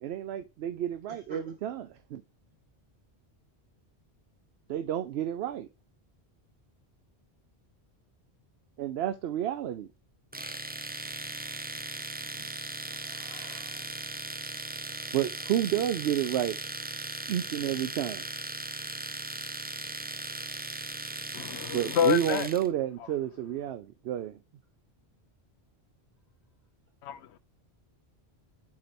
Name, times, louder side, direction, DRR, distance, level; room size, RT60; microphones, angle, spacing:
voice 1, 0.0-2.2 4.7-5.7 8.8-9.9 15.1-16.6 17.3-18.2 21.7-24.4, right 11 dB, 75° right, 0.8 m, -30 dB
voice 2, 1.1-1.4 11.7-12.5 12.8-14.2, right 1 dB, 40° right, 2.5 m, -49 dB
Domestic sounds home sounds, 10.3-22.7, right 2 dB, 15° right, 0.3 m, -38 dB
voice 3, 21.3-22.5 23.0-23.1 27.0-27.4, left 9 dB, 80° left, 0.9 m, -28 dB
8.6 x 4.4 x 2.6 m
omnidirectional pair, 1.1 m